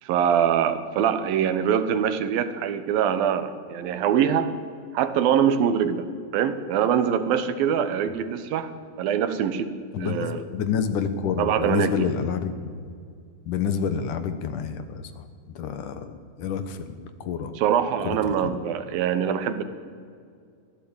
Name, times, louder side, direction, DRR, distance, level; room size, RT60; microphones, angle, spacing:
voice 1, 0.0-4.5 4.9-6.1 6.3-8.7 9.0-10.4 11.4-12.1 17.6-19.6, right 8 dB, 80° right, 11 dB, 2.9 m, -23 dB
voice 2, 9.9-12.5 13.5-17.6 18.0-18.6, left 7 dB, 65° left, 10 dB, 2.5 m, -29 dB
23.0 x 15.5 x 8.8 m, 2.2 s
omnidirectional pair, 4.2 m